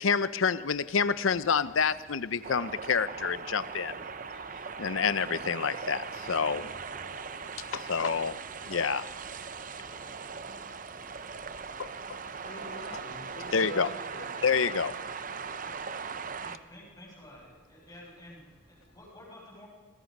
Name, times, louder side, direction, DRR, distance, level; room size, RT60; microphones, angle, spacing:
voice 1, 0.0-3.9 4.8-6.7 7.7-8.4 8.7-9.0 11.8-11.9 13.5-13.9 14.4-15.0, left 6 dB, 75° left, 0.7 m, -28 dB
sound 1, 0.5-19.0, equal, ahead, 7.4 m, -57 dB
sound 2, 2.4-16.6, right 5 dB, 40° right, 0.7 m, -40 dB
voice 2, 12.4-14.5, equal, 60° left, 5.7 m, -44 dB
voice 3, 16.4-19.7, left 1 dB, 20° left, 6.9 m, -51 dB
26.5 x 20.0 x 5.4 m
head